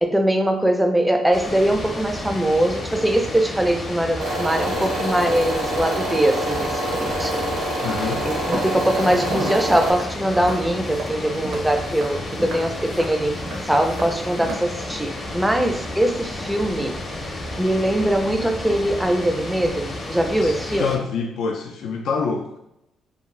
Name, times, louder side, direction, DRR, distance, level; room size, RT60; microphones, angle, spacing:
voice 1, 0.0-7.5 8.2-17.0 17.6-21.0, right 1 dB, 5° right, 5 dB, 0.4 m, -22 dB
sound 1, 1.3-21.0, left 1 dB, 35° left, 0.6 m, -32 dB
sound 2, 4.2-9.9, right 1 dB, 85° right, 0.9 m, -26 dB
voice 2, 7.8-8.2 20.4-22.6, left 5 dB, 75° left, 2 dB, 0.3 m, -26 dB
Walk footsteps, 8.5-14.5, right 1 dB, 65° right, 0.6 m, -34 dB
2.6 x 2.3 x 3.1 m, 0.82 s
cardioid pair, 90°, 0 cm